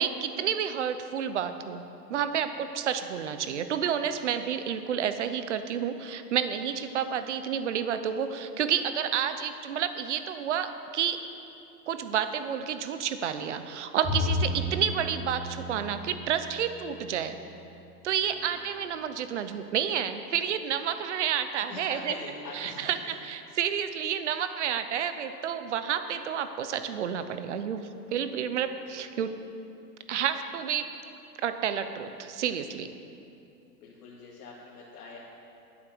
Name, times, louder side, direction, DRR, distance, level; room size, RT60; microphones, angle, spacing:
voice 1, 0.0-1.8 2.1-11.2 11.9-17.4 18.0-22.1 22.5-23.0 23.2-27.8 28.1-29.4 30.1-30.9 31.4-32.9, right 8 dB, 45° right, 10 dB, 0.7 m, -30 dB
Bowed string instrument, 14.0-17.4, left 1 dB, 15° right, 2.3 m, -33 dB
voice 2, 18.3-18.6 19.5-19.6 21.6-23.2 33.8-35.2, left 3 dB, 70° left, -6 dB, 2.3 m, -44 dB
11.5 x 8.7 x 6.1 m, 2.7 s
supercardioid pair, 180°, 48 cm